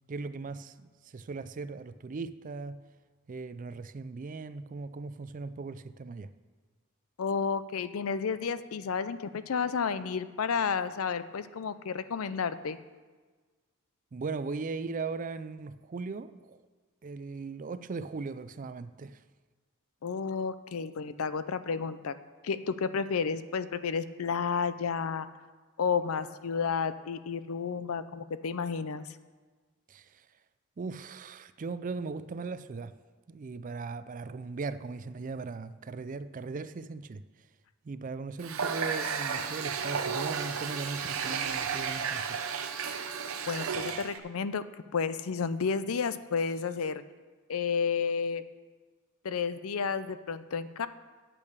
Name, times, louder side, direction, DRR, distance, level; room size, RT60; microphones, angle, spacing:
voice 1, 0.1-2.8 3.3-6.3 14.1-16.6 17.0-19.2 29.9-30.3 30.8-32.9 33.3-37.2 37.8-42.4, right 4 dB, 35° right, 14 dB, 0.4 m, -38 dB
voice 2, 7.2-12.8 20.0-22.1 22.4-25.3 25.8-29.2 43.5-44.6 44.9-47.0 47.5-48.4 49.2-50.9, left 5 dB, 75° left, 14 dB, 0.5 m, -31 dB
Water tap faucet, 38.4-44.2, right 6 dB, 70° right, 0.8 m, -33 dB
8.5 x 8.5 x 6.7 m, 1.4 s
head